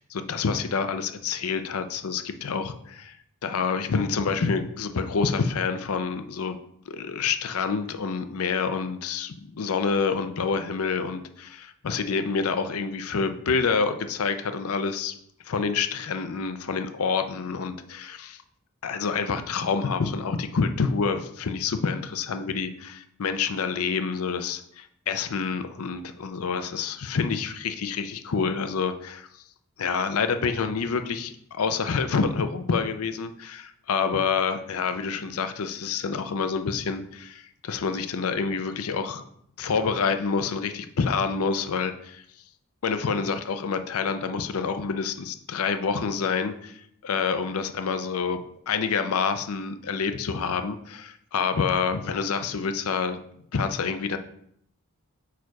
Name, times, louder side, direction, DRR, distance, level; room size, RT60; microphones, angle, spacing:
voice 1, 0.1-3.1 3.4-6.6 6.9-15.1 15.4-18.4 18.8-29.3 29.8-39.2 39.6-42.2 42.8-53.2 53.5-54.2, left 5 dB, 85° left, 9 dB, 0.5 m, -27 dB
4.7 x 4.7 x 4.6 m, 0.69 s
head